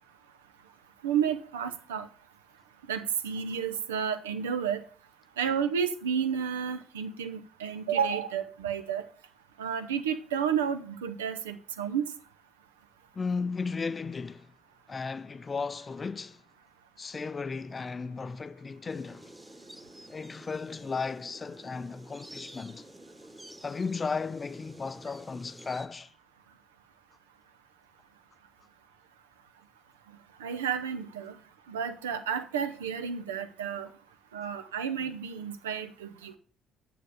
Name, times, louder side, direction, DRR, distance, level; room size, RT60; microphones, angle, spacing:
voice 1, 1.0-2.1 2.9-4.8 5.4-9.0 9.6-12.1 30.4-31.3 31.7-33.9 34.3-36.4, right 7 dB, 75° right, 0.8 m, -31 dB
voice 2, 13.1-14.5 14.9-16.4 17.0-19.3 20.1-22.9 23.6-26.1, left 4 dB, 30° left, 0.5 m, -35 dB
sound 1, 18.9-25.9, right 1 dB, 10° right, 1.3 m, -50 dB
9.8 x 7.0 x 5.0 m
figure-of-eight pair, 50°, 0 cm